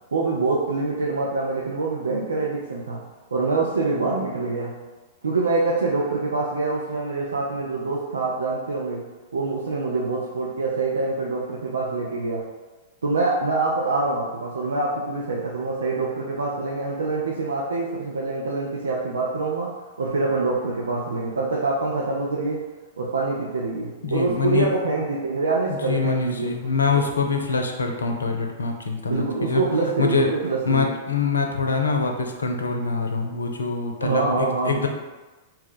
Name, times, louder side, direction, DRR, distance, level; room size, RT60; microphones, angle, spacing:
voice 1, 0.1-3.0 3.3-4.8 5.2-12.5 13.0-22.7 23.0-26.5 26.9-27.0 29.1-30.9 34.0-34.9, right 3 dB, 75° right, -4 dB, 0.4 m, -25 dB
voice 2, 24.0-24.7 25.9-29.6 30.0-30.3 30.7-34.9, left 4 dB, 80° left, 3 dB, 0.4 m, -24 dB
2.8 x 2.2 x 3.8 m, 1.2 s
figure-of-eight pair, 100°, 0 cm